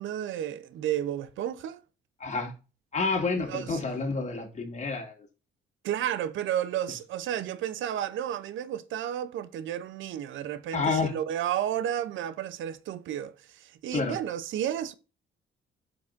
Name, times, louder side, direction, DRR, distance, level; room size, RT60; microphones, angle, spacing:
voice 1, 0.0-1.8 3.4-3.8 5.8-14.9, right 11 dB, 80° right, 0.7 m, -32 dB
voice 2, 2.2-2.5 2.9-5.1 10.7-11.2 13.9-14.1, left 4 dB, 35° left, 2.4 m, -29 dB
9.2 x 6.1 x 2.5 m
cardioid pair, 90°, 20 cm